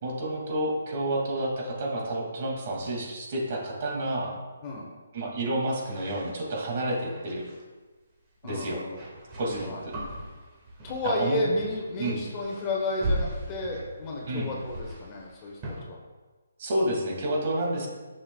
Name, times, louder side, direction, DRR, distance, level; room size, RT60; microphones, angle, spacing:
voice 1, 0.0-4.4 5.1-7.4 8.4-8.8 9.4-10.0 11.0-11.4 12.0-12.2 14.3-14.5 16.6-17.9, right 1 dB, 40° right, -1 dB, 2.1 m, -29 dB
sound 1, 5.8-7.6 8.5-11.3 11.6-11.9 12.2-15.8, right 1 dB, 25° right, 1.7 m, -38 dB
voice 2, 8.4-9.0 9.6-9.8 10.8-16.0, left 2 dB, 25° left, -2 dB, 1.1 m, -32 dB
9.8 x 6.6 x 2.3 m, 1.3 s
hypercardioid pair, 155°, 0 cm